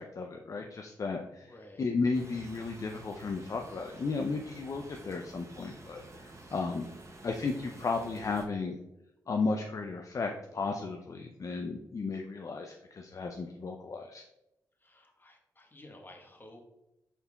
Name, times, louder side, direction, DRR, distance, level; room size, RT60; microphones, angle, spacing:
voice 1, 0.0-6.9 7.2-8.8 9.3-14.2, left 4 dB, 45° left, 3 dB, 0.4 m, -34 dB
voice 2, 1.4-1.9 14.8-16.6, left 1 dB, 25° left, 2 dB, 1.1 m, -53 dB
sound 1, 2.1-8.5, right 2 dB, 40° right, 0.8 m, -50 dB
5.3 x 4.3 x 2.3 m, 0.88 s
supercardioid pair, 45°, 8 cm